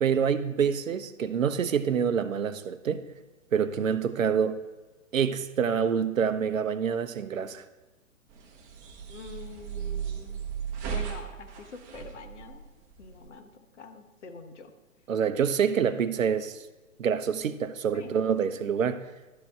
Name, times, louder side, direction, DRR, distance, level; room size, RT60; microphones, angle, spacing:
voice 1, 0.0-3.0 3.5-4.6 5.1-7.6 15.1-16.6 17.0-19.0, right 7 dB, 70° right, 12 dB, 0.7 m, -26 dB
sound 1, 8.3-13.3, right 8 dB, 20° right, 0.9 m, -36 dB
voice 2, 9.1-10.4 10.9-12.7 13.0-14.7 17.9-18.2 18.5-18.6, left 5 dB, 55° left, 8 dB, 1.2 m, -45 dB
12.5 x 4.7 x 4.7 m, 1.2 s
figure-of-eight pair, 120°, 41 cm